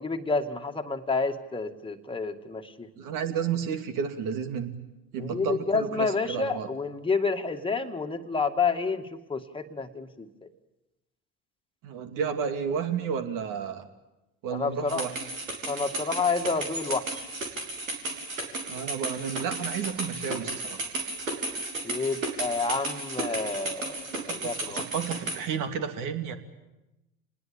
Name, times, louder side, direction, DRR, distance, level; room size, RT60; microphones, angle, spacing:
voice 1, 0.0-2.9 5.1-10.5 14.5-15.0 15.7-17.3 21.8-24.8, left 4 dB, 15° left, 4 dB, 2.2 m, -29 dB
voice 2, 3.0-4.8 5.1-6.7 11.8-13.8 14.4-15.3 18.7-20.9 24.1-26.4, right 7 dB, 55° right, 7 dB, 2.7 m, -32 dB
sound 1, 14.9-25.4, right 2 dB, 85° right, 3.4 m, -34 dB
27.5 x 20.0 x 8.8 m, 0.98 s
figure-of-eight pair, 65°, 39 cm